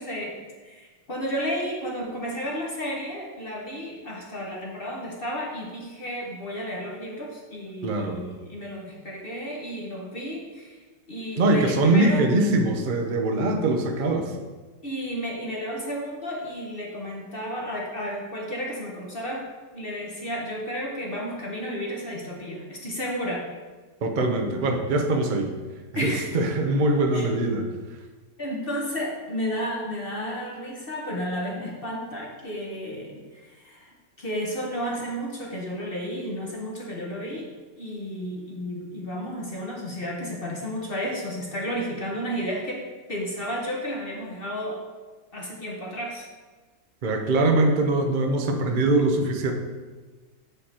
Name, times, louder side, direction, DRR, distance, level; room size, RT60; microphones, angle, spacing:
voice 1, 0.0-10.8 11.1-12.2 14.8-19.5 19.7-23.5 25.9-26.3 27.1-27.3 28.4-37.5 37.8-42.8 43.1-44.8 45.3-46.3, equal, 40° left, -2 dB, 1.0 m, -32 dB
voice 2, 7.8-8.2 11.4-14.3 24.0-25.5 25.9-27.7 47.0-49.5, right 2 dB, 60° right, 3 dB, 0.5 m, -22 dB
7.9 x 5.1 x 4.3 m, 1.3 s
omnidirectional pair, 1.9 m